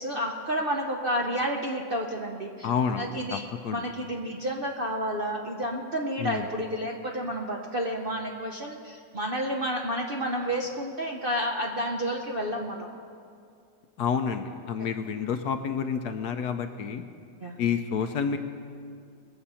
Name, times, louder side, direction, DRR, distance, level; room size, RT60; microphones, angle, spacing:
voice 1, 0.0-2.7 3.0-3.4 3.7-12.9 17.4-17.5, equal, 45° right, 0 dB, 0.7 m, -30 dB
voice 2, 2.6-3.8 6.2-6.5 14.0-17.0 17.6-18.4, left 7 dB, 70° left, 7 dB, 1.1 m, -29 dB
20.5 x 7.8 x 5.7 m, 2.4 s
omnidirectional pair, 2.0 m